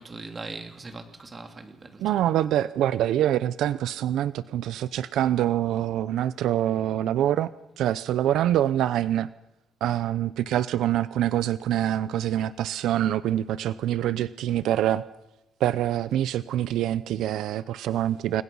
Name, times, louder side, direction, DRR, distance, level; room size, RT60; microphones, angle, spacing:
voice 1, 0.0-2.3, right 3 dB, 25° right, 3.2 m, -40 dB
voice 2, 2.0-7.5 7.8-9.3 9.8-15.0 15.6-18.4, right 12 dB, 80° right, 0.7 m, -25 dB
29.5 x 22.5 x 5.6 m
cardioid pair, 130°, 0 cm